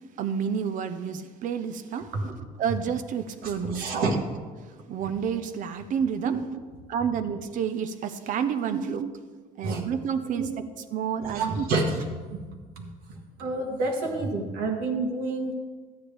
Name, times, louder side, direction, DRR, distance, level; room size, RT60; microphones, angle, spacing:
voice 1, 0.2-2.1 2.6-4.2 4.9-6.4 6.9-9.1 9.6-10.5 10.9-11.6, right 7 dB, 55° right, 10 dB, 0.7 m, -29 dB
voice 2, 3.4-4.1 6.2-6.4 8.7-8.8 9.6-9.8 10.4-10.5 11.2-11.9 12.3-12.4 12.8-12.9 13.4-15.5, right 3 dB, 75° right, 1 dB, 1.6 m, -28 dB
12.5 x 9.0 x 3.4 m, 1.4 s
cardioid pair, 120°, 16 cm